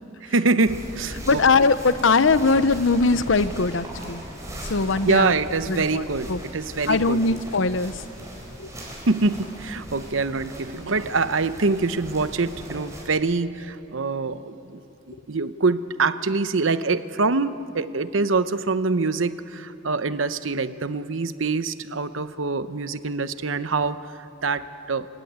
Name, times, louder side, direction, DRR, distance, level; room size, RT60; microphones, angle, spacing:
voice 1, 0.2-1.4 5.0-7.4 9.1-14.8 15.1-25.1, right 3 dB, 90° right, 12 dB, 0.9 m, -25 dB
sound 1, 0.7-13.0, equal, 15° right, 4.8 m, -39 dB
voice 2, 1.3-4.2 4.7-5.3 5.7-6.0 6.3-6.4 6.9-8.0 8.6-8.7, left 4 dB, 75° left, 14 dB, 0.8 m, -20 dB
27.5 x 17.0 x 9.4 m, 2.8 s
head